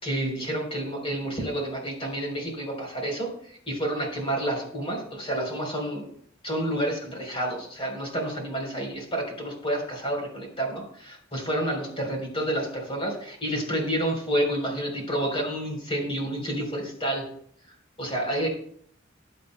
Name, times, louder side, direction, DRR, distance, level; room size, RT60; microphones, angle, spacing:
voice 1, 0.0-3.3 3.7-6.1 6.4-17.2 18.0-18.5, right 1 dB, 30° left, 1 dB, 3.8 m, -29 dB
20.0 x 8.4 x 2.2 m, 0.62 s
head